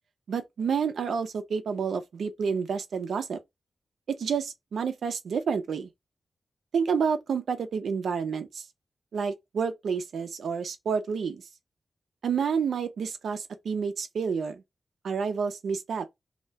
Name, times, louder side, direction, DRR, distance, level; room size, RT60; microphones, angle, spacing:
voice 1, 0.3-3.4 4.1-5.9 6.7-8.6 9.1-11.4 12.2-14.6 15.0-16.1, right 6 dB, 85° right, 0.6 m, -29 dB
2.8 x 2.8 x 3.2 m
cardioid pair, 75°, 0 cm